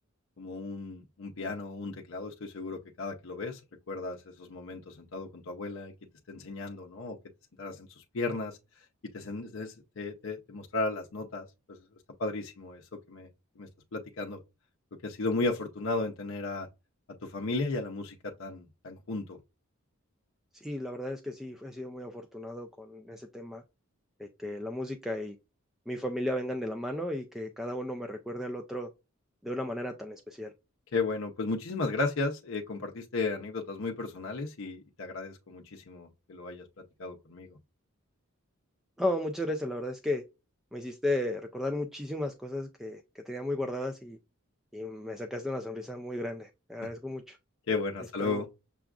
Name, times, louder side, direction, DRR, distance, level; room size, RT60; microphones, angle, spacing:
voice 1, 0.4-3.6 3.9-5.9 6.3-7.2 7.6-8.6 9.1-11.8 12.2-12.8 13.1-13.3 13.6-14.4 15.0-16.7 17.1-19.4 30.9-37.6 47.7-48.5, left 3 dB, 65° left, 0.6 m, -35 dB
voice 2, 20.5-23.6 24.2-25.4 25.9-28.9 29.4-30.5 39.0-40.2 40.7-44.2 44.7-47.4 48.2-48.4, left 1 dB, ahead, 0.3 m, -34 dB
6.8 x 2.4 x 2.3 m
head